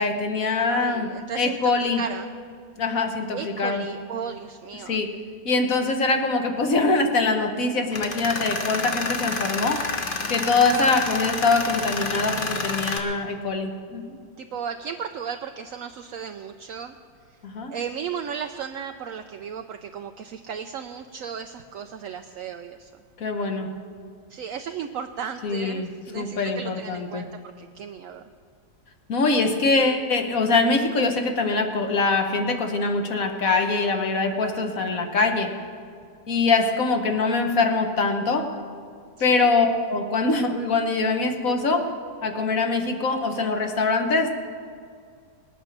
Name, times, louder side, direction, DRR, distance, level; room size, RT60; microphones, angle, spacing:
voice 1, 0.0-1.1 1.4-2.0 2.8-3.8 4.9-5.1 5.4-9.8 10.3-14.2 17.4-17.7 23.2-23.7 25.4-27.2 29.1-35.5 36.3-38.5 39.2-41.9 42.2-44.4, left 3 dB, 55° left, 4 dB, 1.6 m, -23 dB
voice 2, 0.7-2.3 3.3-5.0 10.5-10.9 14.4-16.9 17.7-22.9 24.3-28.2 39.2-39.5, right 7 dB, 70° right, 6 dB, 0.8 m, -35 dB
Tools, 7.9-13.0, left 3 dB, 35° left, 1.1 m, -29 dB
19.5 x 8.9 x 6.6 m, 2.2 s
omnidirectional pair, 1.8 m